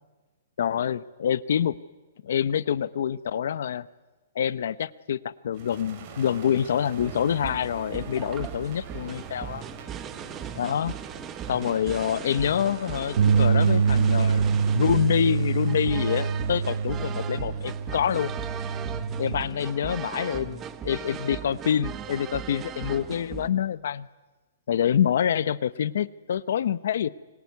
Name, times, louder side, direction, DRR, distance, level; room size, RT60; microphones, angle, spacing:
voice 1, 0.6-1.7 2.2-3.9 4.3-9.6 10.6-10.9 11.5-14.4 14.7-18.3 19.2-24.1 24.7-27.1, left 9 dB, 60° left, 17 dB, 0.8 m, -26 dB
sound 1, 5.5-18.3, right 6 dB, 30° right, 4.3 m, -45 dB
sound 2, 7.0-23.5, right 9 dB, 15° right, 1.1 m, -38 dB
sound 3, 13.2-19.4, right 5 dB, 55° right, 1.6 m, -25 dB
26.0 x 23.5 x 9.5 m, 1.2 s
hypercardioid pair, 170°, 0 cm